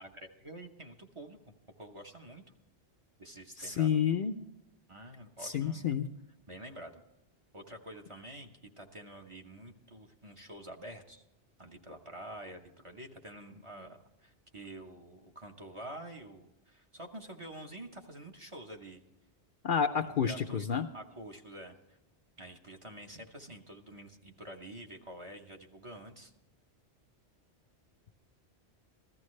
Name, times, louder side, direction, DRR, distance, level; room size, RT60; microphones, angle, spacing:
voice 1, 0.0-1.4 1.8-2.4 3.2-3.9 4.9-5.9 6.5-7.0 7.5-11.2 11.6-19.0 20.0-22.0 22.4-26.3, right 1 dB, 30° right, 3 dB, 1.0 m, -48 dB
voice 2, 3.6-4.3 5.4-6.1 19.6-20.9, left 7 dB, 55° left, 6 dB, 0.7 m, -29 dB
15.5 x 13.5 x 3.2 m, 0.90 s
omnidirectional pair, 1.2 m